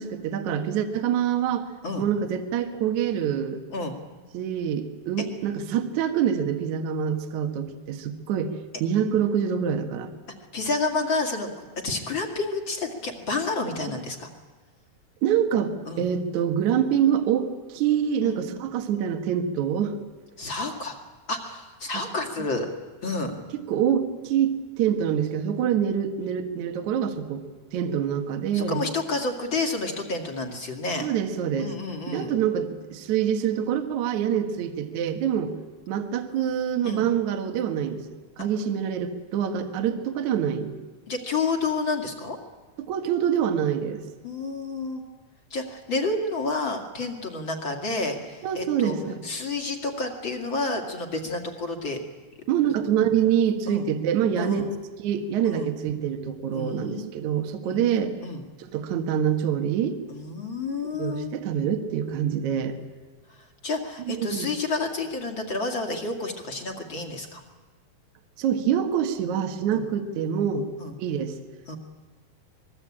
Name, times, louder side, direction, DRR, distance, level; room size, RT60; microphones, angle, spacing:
voice 1, 0.0-1.7 2.0-3.6 4.3-8.5 8.8-10.1 13.9-14.0 15.2-20.0 23.7-27.4 27.7-28.8 31.0-31.7 32.1-35.5 35.9-38.0 38.4-40.7 42.9-44.0 48.4-49.2 52.5-54.7 55.0-58.1 58.6-60.0 61.0-62.8 64.1-64.5 68.4-70.7 71.0-71.4, right 8 dB, 60° right, 6 dB, 2.6 m, -25 dB
voice 2, 10.5-14.3 15.9-16.0 18.2-18.5 20.4-20.9 21.3-22.7 23.0-23.4 28.5-31.1 31.6-32.3 36.8-37.1 41.1-42.4 44.2-45.0 45.5-49.0 49.2-52.0 53.7-53.8 54.4-54.7 55.4-55.7 56.5-57.1 57.6-57.8 58.2-58.4 60.1-61.3 63.3-67.4 69.7-69.8 70.8-70.9 71.7-71.8, left 3 dB, 35° left, 3 dB, 2.8 m, -30 dB
25.5 x 21.5 x 8.8 m, 1.4 s
omnidirectional pair, 4.1 m